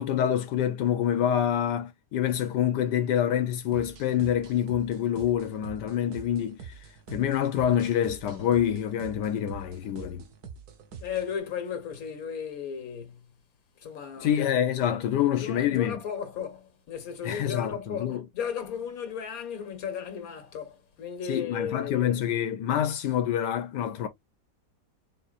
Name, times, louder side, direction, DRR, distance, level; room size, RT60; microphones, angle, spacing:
voice 1, 0.0-6.8 7.1-10.2 14.2-16.0 17.2-18.2 21.3-24.1, left 10 dB, 90° left, 1.4 m, -26 dB
sound 1, 3.7-11.4, right 6 dB, 70° right, 1.5 m, -45 dB
voice 2, 11.0-13.3 13.8-14.4 14.9-15.0 15.4-22.2, left 7 dB, 60° left, 1.8 m, -35 dB
4.4 x 4.3 x 2.4 m
omnidirectional pair, 1.8 m